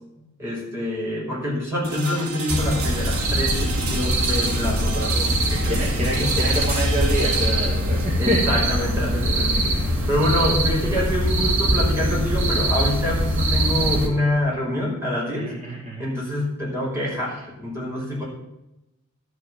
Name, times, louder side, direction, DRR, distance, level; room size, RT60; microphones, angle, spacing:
voice 1, 0.4-6.5 8.2-15.5 16.0-18.2, left 1 dB, 10° right, -5 dB, 5.6 m, -26 dB
sound 1, 1.8-11.7, right 3 dB, 80° right, 3.6 m, -33 dB
sound 2, 2.5-14.1, right 1 dB, 65° right, 2.3 m, -22 dB
voice 2, 5.7-8.6 15.3-16.1, equal, 30° right, -5 dB, 2.4 m, -27 dB
13.0 x 6.6 x 7.5 m, 0.90 s
head